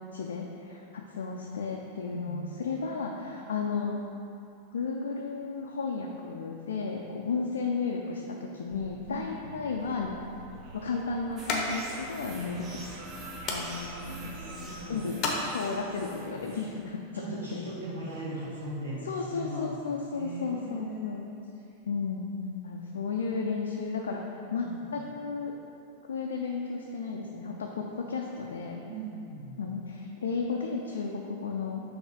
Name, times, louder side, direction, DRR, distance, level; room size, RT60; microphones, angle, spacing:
voice 1, 0.1-4.0 4.7-10.1 10.7-12.7 13.5-14.3 14.9-15.2 15.5-17.7 19.0-21.3 21.9-24.2 24.5-25.5 26.1-28.8 29.6-31.8, left 4 dB, 65° left, 0 dB, 0.4 m, -33 dB
voice 2, 2.1-2.5 9.1-9.4 12.5-12.6 13.3-13.4 14.3-15.1 17.1-19.7 20.1-21.2 24.6-25.0 28.9-29.5, right 2 dB, 70° right, -8 dB, 1.1 m, -39 dB
sound 1, 8.7-14.8, right 3 dB, 40° right, 0.5 m, -46 dB
sound 2, 9.8-16.1, left 2 dB, 35° left, 0.8 m, -37 dB
sound 3, 11.4-16.9, equal, 25° right, 1.0 m, -46 dB
6.1 x 3.3 x 5.2 m, 2.7 s
figure-of-eight pair, 90°, 0 cm